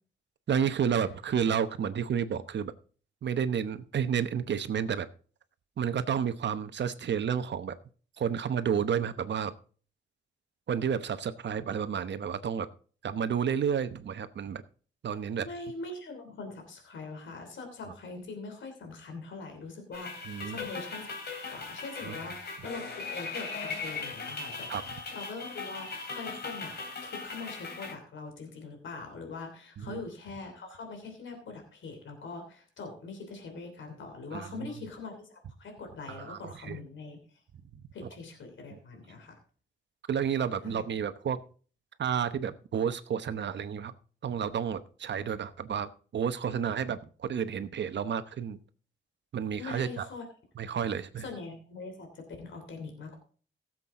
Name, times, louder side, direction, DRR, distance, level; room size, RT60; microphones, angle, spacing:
voice 1, 0.5-2.7 3.2-5.1 5.8-7.8 8.2-9.5 10.7-12.7 13.0-14.6 15.0-15.5 20.2-20.6 22.0-22.2 24.7-24.8 29.8-30.0 34.3-34.7 36.1-36.8 38.7-38.8 40.1-41.4 42.0-43.9 44.2-48.6 49.3-50.1 50.6-51.2, right 7 dB, 70° right, 12 dB, 0.9 m, -31 dB
voice 2, 15.4-21.1 21.5-26.8 27.0-35.3 35.6-37.2 37.9-39.4 40.6-40.8 49.6-50.3 51.2-53.2, left 3 dB, 80° left, 4 dB, 3.1 m, -42 dB
sound 1, 19.9-27.9, left 4 dB, 60° left, 3.1 m, -39 dB
16.0 x 7.6 x 3.7 m, 0.40 s
cardioid pair, 90°, 19 cm